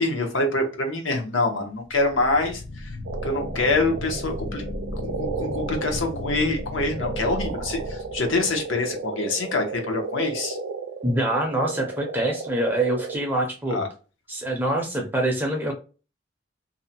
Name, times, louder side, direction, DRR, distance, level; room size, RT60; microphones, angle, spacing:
voice 1, 0.0-3.0 3.2-4.6 4.9-10.6 13.7-13.9, left 2 dB, 85° left, 3 dB, 0.8 m, -25 dB
sound 1, 1.9-8.8, left 1 dB, 50° left, 0.4 m, -35 dB
sound 2, 3.0-13.2, right 4 dB, 70° right, 0.4 m, -34 dB
voice 2, 11.0-13.9 14.3-15.7, right 1 dB, 10° right, 1 dB, 0.5 m, -25 dB
2.6 x 2.1 x 2.6 m, 0.34 s
head